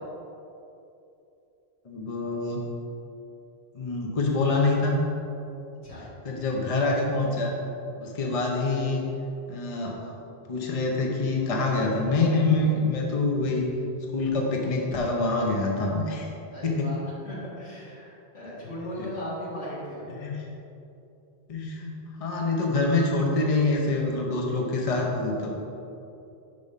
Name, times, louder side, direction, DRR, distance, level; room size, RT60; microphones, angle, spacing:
voice 1, 1.8-2.6 3.7-5.0 6.2-7.5 8.0-9.0 9.5-10.1 10.5-13.7 14.1-16.3 16.6-16.9 19.0-19.1 20.2-20.5 21.5-25.5, left 3 dB, 40° left, 0 dB, 0.8 m, -26 dB
voice 2, 16.5-20.3, left 1 dB, 90° left, -7 dB, 2.0 m, -37 dB
5.4 x 4.9 x 5.4 m, 2.8 s
omnidirectional pair, 1.1 m